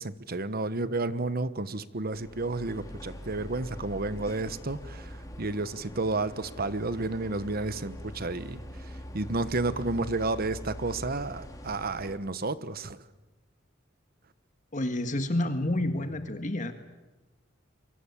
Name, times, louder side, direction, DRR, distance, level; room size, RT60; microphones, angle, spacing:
voice 1, 0.0-13.0, right 3 dB, 50° right, 14 dB, 1.1 m, -31 dB
sound 1, 2.1-12.2, equal, 20° left, 3.2 m, -43 dB
voice 2, 14.7-16.7, left 1 dB, 40° left, 7 dB, 1.7 m, -29 dB
28.5 x 23.5 x 8.5 m, 1.1 s
head